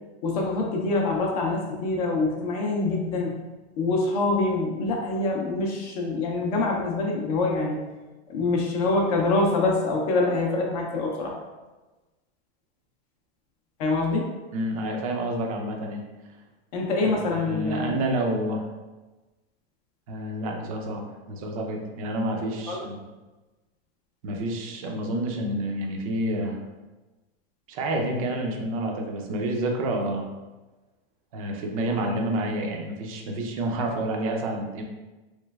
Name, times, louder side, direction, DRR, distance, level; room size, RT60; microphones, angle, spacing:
voice 1, 0.2-3.3 3.8-7.8 8.3-11.4 13.8-14.3 16.7-18.0 22.7-22.8, left 3 dB, 40° left, -1 dB, 0.5 m, -25 dB
voice 2, 14.5-16.0 17.0-18.6 20.1-21.0 21.3-23.0 24.2-26.6 27.7-30.3 31.3-34.8, right 1 dB, 35° right, 2 dB, 0.4 m, -29 dB
3.2 x 3.0 x 2.3 m, 1.2 s
supercardioid pair, 170°, 32 cm